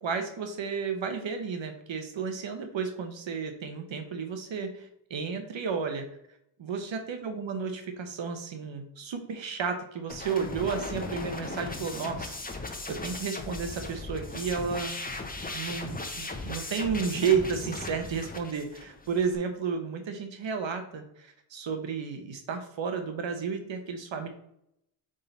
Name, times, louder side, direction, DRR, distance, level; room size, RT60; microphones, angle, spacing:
voice 1, 0.0-6.1 6.6-15.0 15.4-24.3, right 6 dB, 65° right, 6 dB, 1.1 m, -32 dB
sound 1, 10.1-19.4, left 3 dB, 15° left, 1.1 m, -37 dB
8.2 x 3.8 x 4.0 m, 0.77 s
cardioid pair, 75°, 49 cm